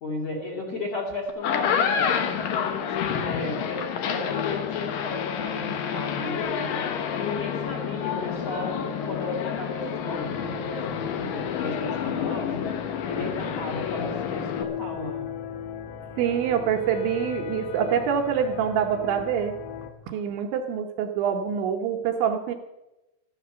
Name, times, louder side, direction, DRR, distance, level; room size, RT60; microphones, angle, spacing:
voice 1, 0.0-6.8 7.1-12.7 13.0-15.2, left 2 dB, 40° left, 0 dB, 3.0 m, -34 dB
sound 1, 1.3-14.6, left 7 dB, 90° left, 1.9 m, -29 dB
sound 2, 4.3-19.9, left 9 dB, 75° left, 2.8 m, -36 dB
voice 2, 16.2-19.5 20.1-22.5, right 8 dB, 75° right, 3 dB, 2.9 m, -25 dB
14.0 x 11.0 x 6.8 m, 0.99 s
omnidirectional pair, 5.8 m